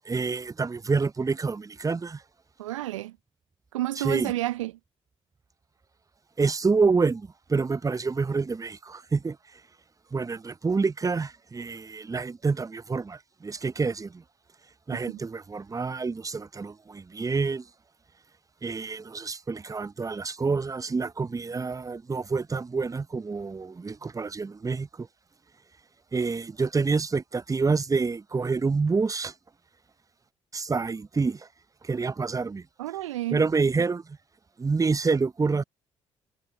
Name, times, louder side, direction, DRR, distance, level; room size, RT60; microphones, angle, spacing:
voice 1, 0.0-2.2 4.0-4.3 6.4-9.6 10.1-14.2 14.9-17.7 18.6-25.1 26.1-29.3 30.5-31.5 31.8-32.7 33.3-34.2 34.6-35.6, right 4 dB, 20° right, 0.7 m, -27 dB
voice 2, 2.6-3.2 3.7-4.7 14.9-15.2 32.8-33.4, right 15 dB, 80° right, 0.5 m, -31 dB
figure-of-eight pair, 45°, 16 cm